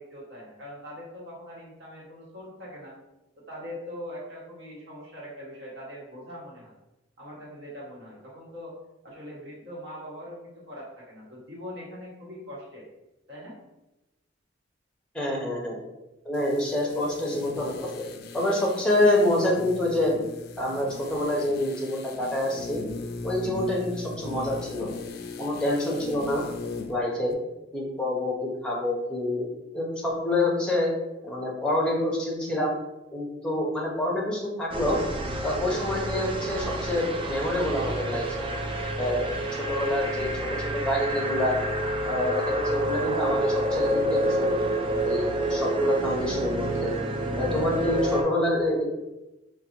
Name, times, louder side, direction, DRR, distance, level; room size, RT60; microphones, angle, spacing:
voice 1, 0.0-2.9 3.3-6.8 7.2-8.7 9.0-12.8 13.3-13.6, equal, 65° right, -5 dB, 1.2 m, -42 dB
voice 2, 15.1-15.8 16.2-17.9 18.3-20.1 20.6-22.8 23.2-24.9 25.4-26.4 26.9-27.3 27.7-29.5 29.7-30.9 31.2-32.7 33.1-35.0 35.4-38.5 39.0-39.3 39.7-41.5 42.0-44.5 45.0-46.9 47.4-48.9, left 1 dB, 5° left, -3 dB, 0.7 m, -27 dB
sound 1, 16.3-27.0 27.3-27.4, left 3 dB, 55° left, 0.3 m, -40 dB
sound 2, 34.7-48.2, right 1 dB, 30° right, 0.4 m, -28 dB
3.9 x 2.2 x 2.9 m, 0.98 s
head